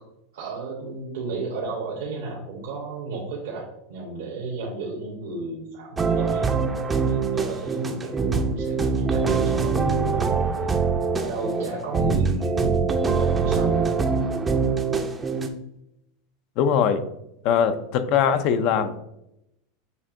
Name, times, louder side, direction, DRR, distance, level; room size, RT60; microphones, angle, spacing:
voice 1, 0.3-6.6 7.0-8.7 9.1-10.3 10.6-10.7 11.2-13.8 14.1-14.3, right 3 dB, 80° right, -3 dB, 1.0 m, -33 dB
sound 1, 6.0-15.5, right 5 dB, 20° right, 0.5 m, -23 dB
voice 2, 16.6-17.0 17.4-19.0, left 7 dB, 55° left, 11 dB, 0.4 m, -21 dB
6.7 x 2.7 x 2.5 m, 0.83 s
supercardioid pair, 115°, 0 cm